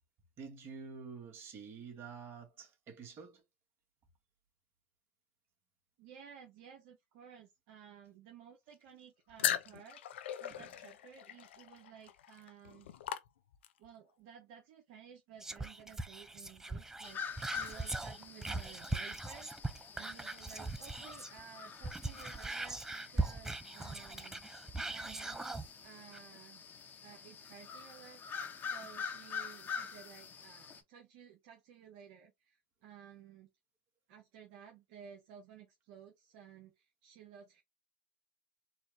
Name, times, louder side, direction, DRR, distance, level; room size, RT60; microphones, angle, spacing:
voice 1, 0.4-3.4 10.5-10.7, right 5 dB, 40° right, 1.6 m, -48 dB
voice 2, 6.0-12.9 13.8-26.6 27.0-33.5 34.1-37.6, right 8 dB, 65° right, 0.9 m, -56 dB
sound 1, 9.4-13.9, left 11 dB, 85° left, 0.5 m, -39 dB
Whispering, 15.4-21.4 21.7-25.7 26.1-26.2, right 2 dB, 10° right, 0.5 m, -40 dB
sound 2, 17.0-30.8, left 6 dB, 30° left, 1.1 m, -46 dB
4.3 x 2.4 x 3.2 m
hypercardioid pair, 105°, 6 cm